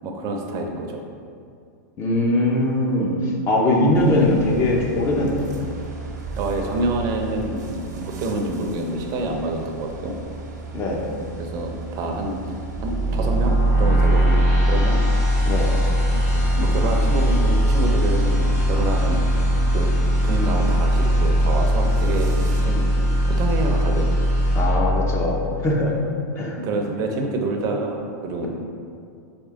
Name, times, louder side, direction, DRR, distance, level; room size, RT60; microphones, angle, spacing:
voice 1, 0.0-1.0 6.4-10.2 11.4-12.6 12.8-15.0 16.1-16.2 16.5-19.2 19.7-20.0 20.2-22.9 23.3-24.1 26.6-28.5, right 2 dB, 40° right, 2 dB, 0.7 m, -27 dB
voice 2, 2.0-3.1 3.5-5.5 10.7-11.0 15.4-15.7 24.5-25.9 26.4-26.6, left 1 dB, 30° left, -1 dB, 0.7 m, -21 dB
sound 1, 3.9-22.6, right 3 dB, 80° right, 0.9 m, -36 dB
sound 2, 12.7-25.7, equal, 55° left, 1.4 m, -20 dB
4.3 x 3.3 x 3.6 m, 2.4 s
hypercardioid pair, 120°, 9 cm